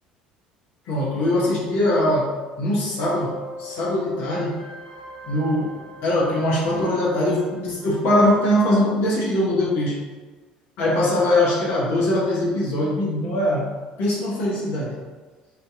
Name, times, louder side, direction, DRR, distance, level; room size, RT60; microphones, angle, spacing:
voice 1, 0.9-2.3 2.6-4.5 5.2-5.7 6.0-9.9 10.8-13.7 14.0-15.0, left 1 dB, 55° left, -5 dB, 1.1 m, -21 dB
sound 1, 3.0-8.1, right 1 dB, 80° right, 0.7 m, -41 dB
2.9 x 2.8 x 3.5 m, 1.3 s
figure-of-eight pair, 60°, 4 cm